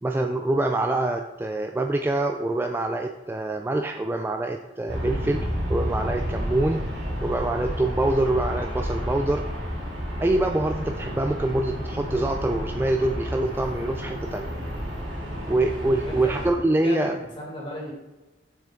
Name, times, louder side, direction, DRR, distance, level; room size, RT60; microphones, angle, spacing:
voice 1, 0.0-6.8 7.2-9.4 10.2-14.5 15.5-17.2, right 2 dB, 10° right, 4 dB, 0.3 m, -25 dB
Aircraft, 4.9-16.5, equal, 85° right, 2.7 m, -31 dB
voice 2, 16.0-17.9, left 2 dB, 30° left, -4 dB, 2.6 m, -36 dB
6.8 x 6.6 x 3.8 m, 1.1 s
head